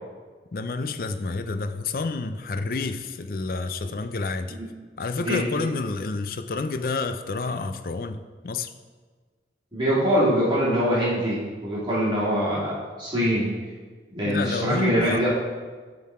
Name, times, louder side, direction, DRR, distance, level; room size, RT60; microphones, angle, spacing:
voice 1, 0.5-4.6 5.0-8.7 14.3-15.3, left 3 dB, 50° left, 8 dB, 0.4 m, -29 dB
voice 2, 9.7-13.5 14.1-15.3, equal, 25° right, -8 dB, 2.2 m, -23 dB
11.0 x 3.9 x 4.2 m, 1.5 s
head